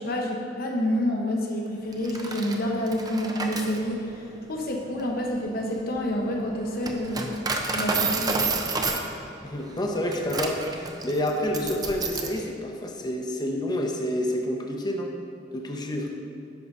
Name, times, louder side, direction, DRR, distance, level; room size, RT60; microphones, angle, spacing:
voice 1, 0.0-4.0 4.5-7.3 7.7-8.5, equal, 55° left, 0 dB, 1.0 m, -28 dB
Coin (dropping), 1.9-12.4, right 3 dB, 20° right, 0.6 m, -31 dB
voice 2, 9.4-15.1 15.5-16.1, left 1 dB, 25° left, 2 dB, 0.7 m, -28 dB
10.5 x 4.0 x 5.3 m, 2.5 s
head